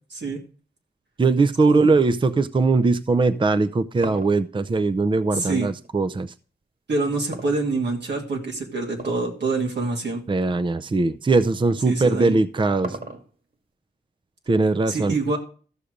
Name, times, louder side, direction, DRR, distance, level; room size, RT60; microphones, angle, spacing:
voice 1, 1.2-6.3 10.3-13.0 14.5-15.2, right 3 dB, 30° right, 12 dB, 0.5 m, -20 dB
sound 1, 3.5-5.9 7.3-8.2 8.9-9.4 9.7-9.8 10.6-10.7 12.0-13.5, right 3 dB, 55° right, 2.1 m, -37 dB
voice 2, 5.3-5.7 6.9-10.2 11.8-12.4 14.9-15.4, right 3 dB, 85° right, 1 dB, 2.3 m, -26 dB
13.5 x 6.7 x 5.0 m, 0.40 s
wide cardioid pair, 70°, 17 cm